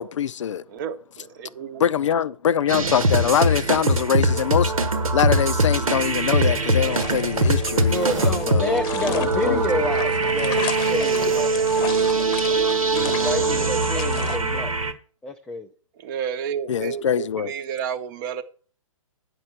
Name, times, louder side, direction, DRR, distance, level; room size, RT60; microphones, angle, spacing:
voice 1, 0.0-0.6 1.8-4.7 5.1-8.8 9.1-9.6 16.7-17.5, left 8 dB, 60° left, 0.5 m, -23 dB
voice 2, 0.7-1.9 16.0-18.4, right 8 dB, 35° right, 0.9 m, -31 dB
sound 1, 2.7-14.9, right 2 dB, 80° right, 1.4 m, -22 dB
sound 2, 6.9-14.4, left 8 dB, 25° left, 0.9 m, -35 dB
sound 3, 7.8-8.5 10.4-11.6, right 6 dB, 65° right, 1.2 m, -40 dB
voice 3, 7.9-10.6 10.9-11.7 12.0-12.1 12.9-14.7 15.2-15.7, left 2 dB, 5° left, 0.4 m, -29 dB
8.9 x 5.3 x 5.7 m
figure-of-eight pair, 125°, 18 cm